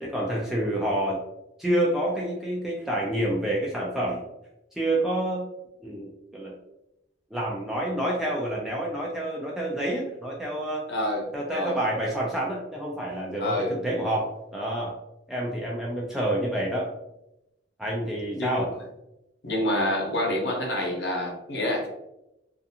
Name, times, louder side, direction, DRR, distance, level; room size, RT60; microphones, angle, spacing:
voice 1, 0.0-1.2 1.6-4.2 4.7-5.4 5.8-6.6 7.3-10.8 11.3-15.0 15.3-16.9 17.8-18.7, right 1 dB, ahead, -4 dB, 0.3 m, -28 dB
voice 2, 10.9-11.2 11.5-11.8 13.4-13.7 18.3-18.7 19.4-21.9, left 1 dB, 65° left, 0 dB, 0.7 m, -27 dB
2.4 x 2.4 x 2.7 m, 0.88 s
head